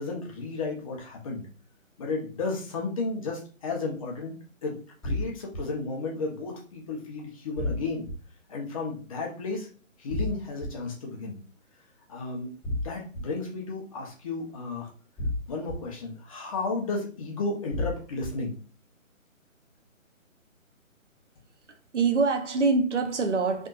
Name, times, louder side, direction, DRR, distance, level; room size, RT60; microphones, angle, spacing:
voice 1, 0.0-1.5 2.0-4.3 4.6-4.8 5.0-8.0 8.5-9.7 10.0-11.4 12.1-12.5 12.8-14.9 15.5-18.5, left 3 dB, 25° left, 1.1 m, -33 dB
sound 1, 5.0-5.6 7.6-8.1 10.1-10.7 12.6-13.2 15.2-15.8 17.7-18.3, left 1 dB, ahead, 1.8 m, -30 dB
voice 2, 21.7-23.7, right 4 dB, 60° right, 1.0 m, -25 dB
4.2 x 3.6 x 2.5 m
figure-of-eight pair, 150°, 41 cm